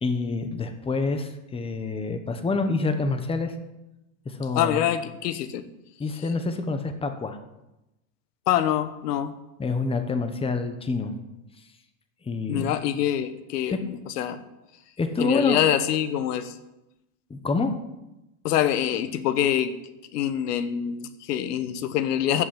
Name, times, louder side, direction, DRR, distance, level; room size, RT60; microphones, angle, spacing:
voice 1, 0.0-3.5 4.2-4.9 6.0-7.4 9.6-11.1 12.2-12.8 15.0-15.6 17.3-17.7, left 3 dB, 10° left, 7 dB, 1.1 m, -27 dB
voice 2, 4.5-5.7 8.5-9.3 12.5-14.4 15.2-16.5 18.4-19.8 20.1-22.4, left 10 dB, 85° left, 12 dB, 1.3 m, -25 dB
13.5 x 6.2 x 8.6 m, 0.95 s
supercardioid pair, 130°, 46 cm